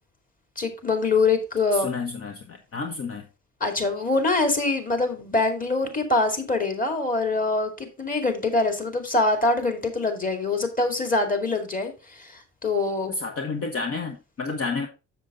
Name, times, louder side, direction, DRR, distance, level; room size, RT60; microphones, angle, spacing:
voice 1, 0.6-1.9 3.6-13.2, left 3 dB, 25° left, 2.4 m, -24 dB
voice 2, 1.7-3.3 13.1-14.9, left 3 dB, 50° left, 1.3 m, -30 dB
7.2 x 7.1 x 3.8 m
cardioid pair, 90°, 30 cm